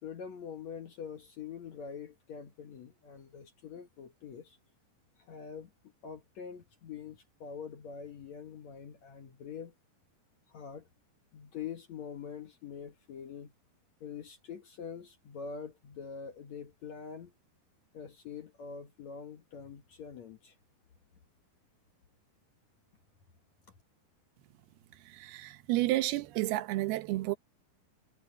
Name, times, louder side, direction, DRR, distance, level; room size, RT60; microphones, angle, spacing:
voice 1, 0.0-4.6 5.2-5.7 6.0-9.7 10.5-10.9 11.3-13.5 14.0-17.3 17.9-20.6, left 6 dB, 55° left, 2.2 m, -44 dB
voice 2, 25.1-27.4, right 17 dB, 80° right, 2.8 m, -31 dB
omnidirectional pair, 4.6 m